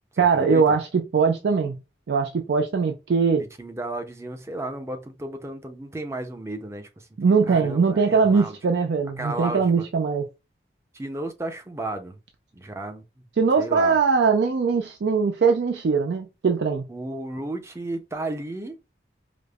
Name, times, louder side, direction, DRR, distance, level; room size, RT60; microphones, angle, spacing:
voice 1, 0.2-1.8 2.1-3.4 7.2-10.3 13.4-16.9, right 5 dB, 75° right, 0.4 m, -21 dB
voice 2, 3.6-7.1 7.5-8.6 9.2-9.7 10.9-12.2 12.5-13.2 13.6-14.0 16.9-18.8, right 2 dB, 15° right, 0.5 m, -33 dB
5.0 x 2.0 x 2.3 m
head